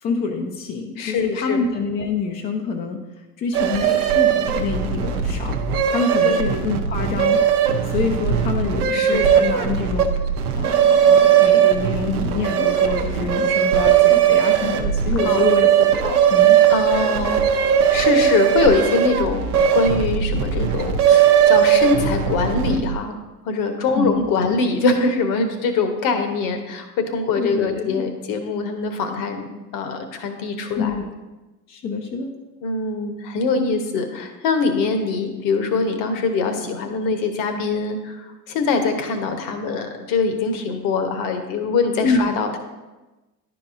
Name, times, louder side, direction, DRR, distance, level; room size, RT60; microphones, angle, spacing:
voice 1, 0.0-3.0 3.4-5.6 5.9-7.4 7.9-10.2 10.5-16.6 23.9-24.5 27.4-28.0 30.8-31.1 31.7-32.3 42.0-42.2, left 4 dB, 20° left, 3 dB, 0.5 m, -26 dB
voice 2, 1.0-1.6 6.2-6.5 8.9-9.3 15.2-15.5 16.7-17.6 17.9-19.4 19.7-23.1 23.4-31.0 32.6-42.6, left 4 dB, 40° left, 7 dB, 1.0 m, -23 dB
sound 1, 3.5-23.0, right 9 dB, 65° right, 0.8 m, -18 dB
11.0 x 4.9 x 2.6 m, 1.1 s
figure-of-eight pair, 70°, 48 cm